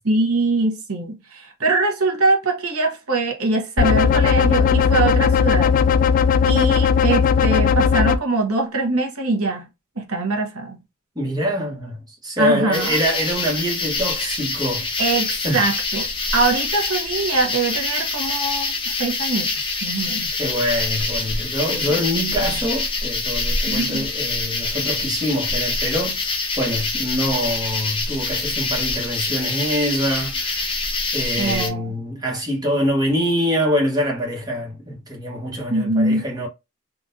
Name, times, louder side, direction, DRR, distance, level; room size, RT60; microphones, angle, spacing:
voice 1, 0.0-5.7 6.4-9.7 10.0-10.8 12.4-13.0 15.0-19.6 19.8-20.3 21.7-21.9 22.3-22.4 23.7-24.1 31.4-31.9 35.7-36.2, right 3 dB, 90° right, 1.0 m, -23 dB
sound 1, 3.8-8.2, left 6 dB, 40° left, 0.3 m, -17 dB
voice 2, 11.1-14.9 15.4-15.6 20.0-30.9 31.1-36.5, equal, 20° right, 1.2 m, -25 dB
sound 2, 12.7-31.7, left 3 dB, 25° left, 0.7 m, -25 dB
3.8 x 2.5 x 2.7 m
head